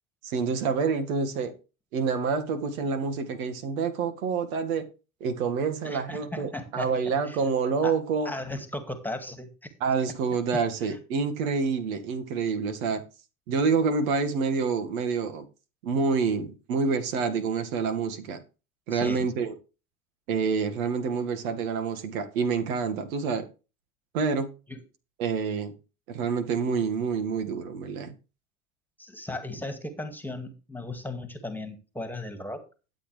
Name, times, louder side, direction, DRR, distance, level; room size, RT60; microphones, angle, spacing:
voice 1, 0.2-1.5 1.9-4.9 5.2-8.3 9.8-13.0 13.5-15.4 15.8-18.4 18.9-19.5 20.3-23.5 24.1-24.5 25.2-25.7 26.1-28.1, right 5 dB, 65° right, 2.0 m, -27 dB
voice 2, 5.8-6.9 7.2-7.4 7.8-8.0 8.2-9.7 10.9-11.0 18.9-19.3 24.7-24.8 29.0-32.6, left 2 dB, 5° left, 2.0 m, -36 dB
13.0 x 8.2 x 3.3 m
hypercardioid pair, 90°, 44 cm